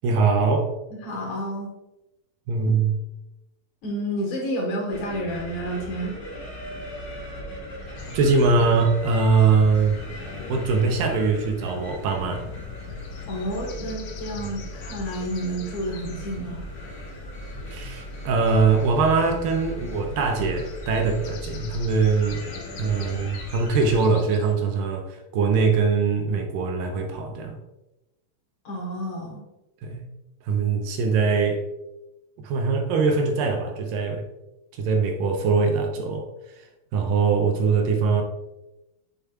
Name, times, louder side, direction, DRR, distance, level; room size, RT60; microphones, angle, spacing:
voice 1, 0.0-0.7 2.5-3.0 7.9-10.0 10.5-12.5 17.7-22.4 22.8-27.6 29.8-30.0 30.5-31.6 32.4-34.3 34.8-36.3 36.6-36.7 36.9-38.2, right 4 dB, 80° right, 4 dB, 2.3 m, -22 dB
voice 2, 0.9-1.7 3.8-6.2 13.3-16.6 28.6-29.4, equal, 60° left, -1 dB, 2.4 m, -30 dB
sound 1, 4.9-24.0, equal, 35° left, 2.8 m, -38 dB
sound 2, 8.0-24.5, left 6 dB, 80° left, 1.7 m, -43 dB
7.2 x 6.9 x 2.3 m, 0.94 s
omnidirectional pair, 4.2 m